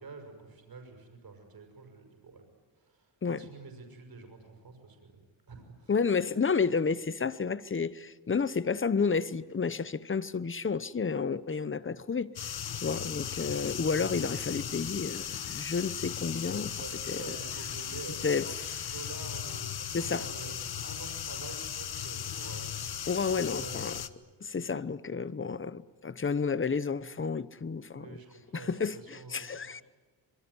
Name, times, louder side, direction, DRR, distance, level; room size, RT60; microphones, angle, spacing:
voice 1, 0.0-2.4 2.8-5.2 5.5-5.9 16.7-23.8 27.9-29.8, right 4 dB, 50° right, 6.2 m, -47 dB
voice 2, 5.9-12.3 12.7-16.8 17.1-17.2 18.2-18.7 19.9-20.3 23.1-24.0 24.4-28.1 28.5-29.8, left 5 dB, 25° left, 0.9 m, -31 dB
sound 1, 12.4-24.1, left 9 dB, 55° left, 1.2 m, -37 dB
26.0 x 23.5 x 9.7 m
wide cardioid pair, 125°, 45 cm